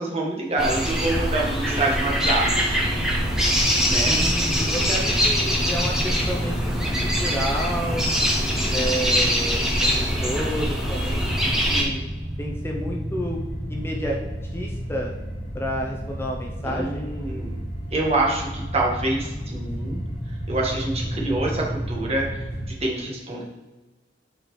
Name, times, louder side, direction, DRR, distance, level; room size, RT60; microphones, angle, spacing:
voice 1, 0.0-2.8 3.9-4.2 9.4-9.7 16.6-17.6 17.9-20.0 20.5-23.4, right 2 dB, 35° right, -2 dB, 1.4 m, -26 dB
sound 1, 0.6-11.8, equal, 5° right, 1.0 m, -23 dB
sound 2, 2.9-22.7, equal, 65° left, 2.0 m, -32 dB
voice 2, 4.0-8.1 8.7-12.0 12.4-13.4 13.7-14.2 14.5-15.1 15.5-17.1, equal, 15° left, 0 dB, 0.6 m, -31 dB
8.1 x 4.2 x 3.1 m, 1.2 s
head